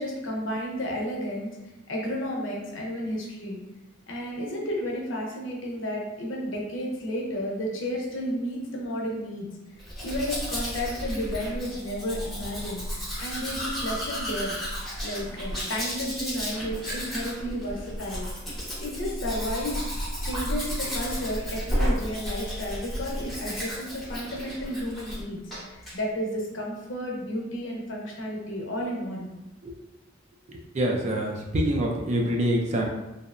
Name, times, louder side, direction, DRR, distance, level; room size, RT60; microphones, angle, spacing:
voice 1, 0.0-1.6 1.9-3.6 4.1-9.5 10.0-12.9 13.2-14.6 15.0-18.3 18.8-19.9 20.2-29.3, equal, 70° left, -1 dB, 0.6 m, -32 dB
Domestic sounds home sounds, 9.8-25.2 25.5-26.0, equal, ahead, 0.7 m, -33 dB
voice 2, 30.5-32.9, right 1 dB, 35° right, 1 dB, 0.3 m, -26 dB
2.8 x 2.0 x 2.4 m, 0.98 s
head